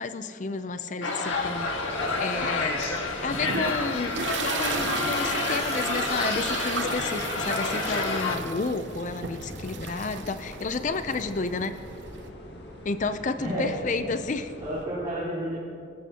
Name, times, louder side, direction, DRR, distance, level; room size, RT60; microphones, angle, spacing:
voice 1, 0.0-2.8 3.2-11.8 12.8-14.5, left 3 dB, 40° left, 10 dB, 0.5 m, -31 dB
sound 1, 1.0-8.4, left 3 dB, 90° left, 1.6 m, -29 dB
sound 2, 1.3-14.9, left 1 dB, 65° left, 2.0 m, -43 dB
sound 3, 2.8-12.3, right 5 dB, 70° right, 0.8 m, -35 dB
voice 2, 13.4-14.1 14.6-15.6, right 1 dB, 20° right, -12 dB, 3.4 m, -31 dB
23.5 x 14.5 x 2.9 m, 2.6 s
head